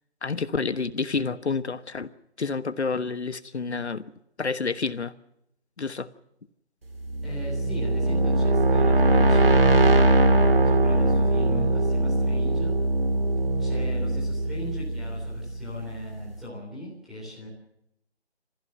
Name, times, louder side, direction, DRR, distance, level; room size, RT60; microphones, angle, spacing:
voice 1, 0.2-2.1 2.4-4.0 4.4-5.1 5.8-6.1, left 4 dB, 80° left, 13 dB, 1.3 m, -29 dB
sound 1, 7.0-15.8, right 2 dB, 60° right, 2.3 m, -21 dB
voice 2, 7.2-12.7 13.6-17.5, left 1 dB, ahead, -7 dB, 3.6 m, -39 dB
26.5 x 15.5 x 7.7 m, 0.80 s
figure-of-eight pair, 175°, 33 cm